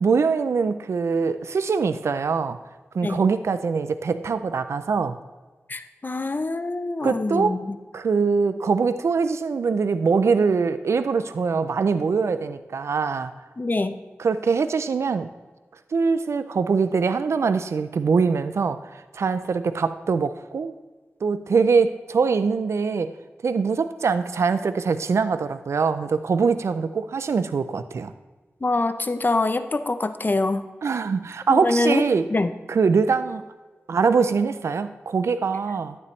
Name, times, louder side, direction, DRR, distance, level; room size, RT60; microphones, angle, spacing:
voice 1, 0.0-2.6 2.9-5.2 7.0-7.6 7.9-13.3 14.2-15.3 15.9-20.7 21.2-23.1 23.4-28.1 30.8-32.3 32.7-33.4 33.9-36.0, right 5 dB, 85° right, 11 dB, 0.4 m, -23 dB
voice 2, 5.7-7.8 13.6-13.9 28.6-30.7 31.5-32.0 32.3-32.5, left 2 dB, 45° left, 11 dB, 0.7 m, -24 dB
11.5 x 9.6 x 3.2 m, 1.3 s
cardioid pair, 50°, 5 cm